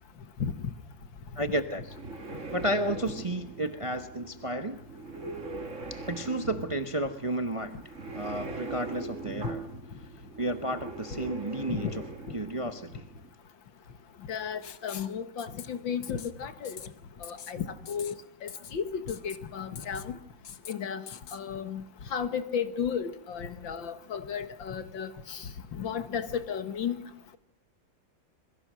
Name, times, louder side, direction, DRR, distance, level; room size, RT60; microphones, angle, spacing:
voice 1, 1.4-1.9 2.5-4.8 5.9-7.8 8.1-9.6 10.4-12.0 12.3-13.1, right 1 dB, 25° right, 8 dB, 0.7 m, -32 dB
sound 1, 1.5-13.3, right 3 dB, 40° right, 2.4 m, -41 dB
voice 2, 14.3-16.8 17.2-18.1 18.4-20.1 20.7-21.0 21.3-21.8 22.1-25.4 25.8-27.0, left 7 dB, 80° left, 10 dB, 2.3 m, -34 dB
Writing, 14.6-15.1 15.4-15.7 16.0-16.3 16.6-16.9 17.2-17.5 17.9-18.1 18.5-18.7 19.1-19.4 19.8-20.1 20.4-20.7 21.1-21.4, left 8 dB, 55° left, 1.5 m, -44 dB
27.0 x 22.5 x 6.3 m, 0.76 s
omnidirectional pair, 2.1 m